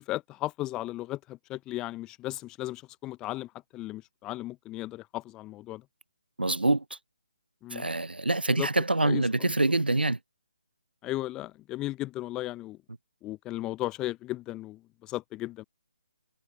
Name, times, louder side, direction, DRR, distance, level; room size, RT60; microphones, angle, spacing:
voice 1, 0.0-5.8 7.6-7.9 8.5-8.7 9.0-9.5 11.0-12.8 13.2-15.6, left 16 dB, 15° left, 0.5 m, -36 dB
voice 2, 6.4-6.8 7.7-10.2, right 2 dB, 85° right, 0.5 m, -25 dB
figure-of-eight pair, 145°, 5 cm